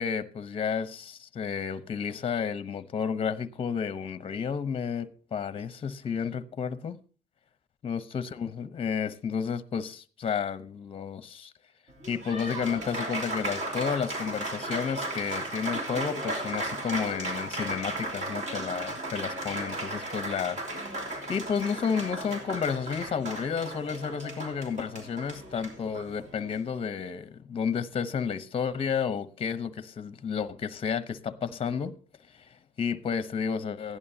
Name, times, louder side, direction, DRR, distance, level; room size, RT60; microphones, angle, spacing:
voice 1, 0.0-7.0 7.8-11.5 12.1-20.6 21.3-32.0 32.4-34.0, left 6 dB, 35° left, 0.8 m, -31 dB
Applause, 11.9-26.6, right 2 dB, 45° right, 3.1 m, -35 dB
16.0 x 11.0 x 2.8 m
cardioid pair, 110°, 17 cm